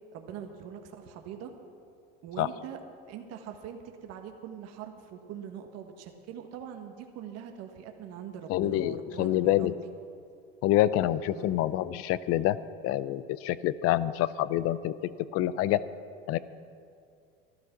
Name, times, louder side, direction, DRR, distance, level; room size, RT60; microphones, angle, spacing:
voice 1, 0.1-1.5 2.2-2.8 3.1-9.7 11.3-11.6, right 8 dB, 55° right, 5 dB, 1.4 m, -42 dB
voice 2, 8.5-9.7 10.6-12.6 12.8-15.8 16.3-16.4, left 13 dB, 50° left, 16 dB, 0.6 m, -27 dB
12.5 x 12.0 x 5.9 m, 2.5 s
supercardioid pair, 95°, 30 cm